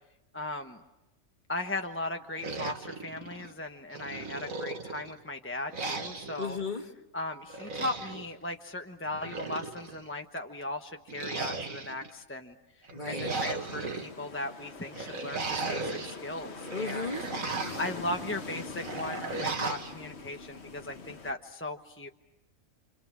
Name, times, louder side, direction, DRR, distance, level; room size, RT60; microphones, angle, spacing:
voice 1, 0.3-0.8 1.5-6.6 7.1-17.2 17.8-22.1, left 1 dB, 10° left, 4 dB, 1.1 m, -37 dB
sound 1, 2.4-3.5 3.9-5.2 5.7-6.5 7.5-8.3 9.0-10.0 11.1-12.1 12.8-14.1 14.9-16.2 16.6-17.9 18.8-19.9, right 3 dB, 85° right, 2.4 m, -36 dB
voice 2, 6.4-6.9 12.9-13.4 16.7-17.8, left 4 dB, 35° left, 4 dB, 2.1 m, -36 dB
sound 2, 13.2-21.3, left 4 dB, 55° left, 1.6 m, -43 dB
29.5 x 26.5 x 7.5 m, 0.95 s
omnidirectional pair, 1.4 m